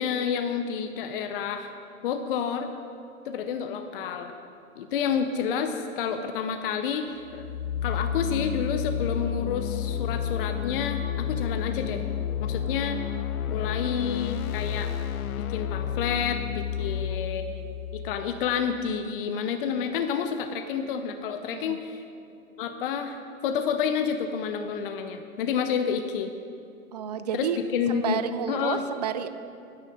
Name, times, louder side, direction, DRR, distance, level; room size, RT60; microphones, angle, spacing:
voice 1, 0.0-1.7 2.0-2.7 3.3-4.3 4.8-7.5 7.8-12.1 12.4-13.0 13.5-14.9 15.4-22.0 22.6-26.3 27.3-28.2 28.5-28.8, left 7 dB, 40° left, 7 dB, 0.7 m, -29 dB
sound 1, 7.2-19.0, left 9 dB, 85° left, 0.6 m, -31 dB
voice 2, 16.8-17.2 21.5-21.8 26.9-27.6 27.9-29.3, right 9 dB, 30° right, 11 dB, 0.4 m, -31 dB
9.9 x 9.7 x 6.4 m, 2.6 s
hypercardioid pair, 140°, 42 cm